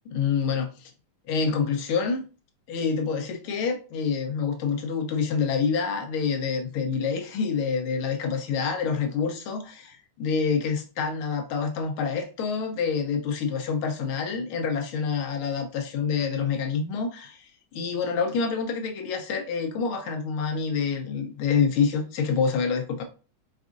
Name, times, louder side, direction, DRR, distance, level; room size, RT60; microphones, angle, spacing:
voice 1, 0.1-0.9 1.3-2.2 2.7-17.4 17.7-23.0, left 5 dB, 80° left, 5 dB, 1.6 m, -27 dB
5.2 x 3.6 x 2.5 m, 0.36 s
omnidirectional pair, 2.3 m